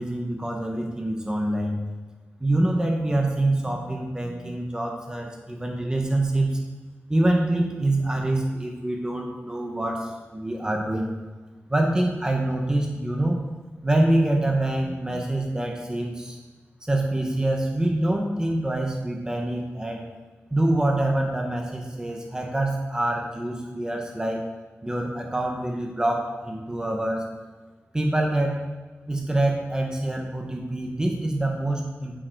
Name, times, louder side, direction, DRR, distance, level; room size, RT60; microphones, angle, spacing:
voice 1, 0.0-1.8 2.4-6.6 7.1-11.1 11.7-13.4 13.8-16.4 16.8-20.0 20.5-24.5 24.8-27.3 27.9-28.7 29.1-32.2, right 1 dB, 15° right, 0 dB, 1.1 m, -25 dB
7.6 x 7.6 x 4.6 m, 1.3 s
wide cardioid pair, 135°, 5 cm